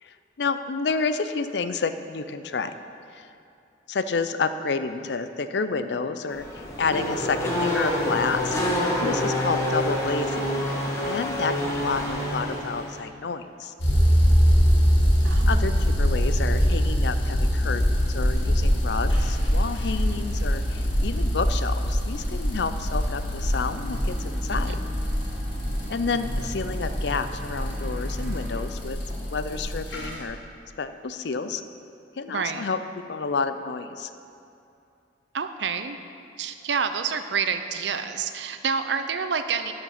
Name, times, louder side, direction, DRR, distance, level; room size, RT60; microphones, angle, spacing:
voice 1, 0.0-2.7 3.1-3.3 3.9-8.6 9.0-10.5 11.1-13.7 15.5-15.7 16.0-17.8 18.1-24.8 25.9-30.4 30.8-31.6 32.2-34.1, left 4 dB, 65° left, 11 dB, 0.5 m, -29 dB
Race car auto racing / Accelerating revving vroom, 6.3-13.0, left 1 dB, 15° left, 1.4 m, -27 dB
sound 1, 13.8-30.1, equal, 90° left, 1.8 m, -23 dB
voice 2, 15.2-15.7 24.5-24.8 32.3-32.7 35.3-36.0 36.4-39.7, right 6 dB, 75° right, 9 dB, 0.6 m, -28 dB
sound 2, 23.4-28.6, equal, 45° right, 1.3 m, -40 dB
12.0 x 6.4 x 5.9 m, 2.6 s
head